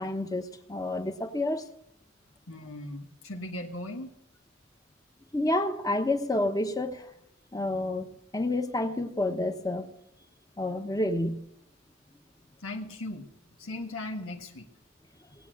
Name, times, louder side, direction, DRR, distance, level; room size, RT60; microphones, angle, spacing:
voice 1, 0.0-1.7 5.3-7.1 7.5-8.1 8.3-9.9 10.6-11.4, left 1 dB, 20° left, 1.0 m, -29 dB
voice 2, 2.5-4.1 12.6-13.3 13.6-14.7, left 1 dB, 90° left, 1.5 m, -38 dB
19.5 x 8.4 x 6.3 m
head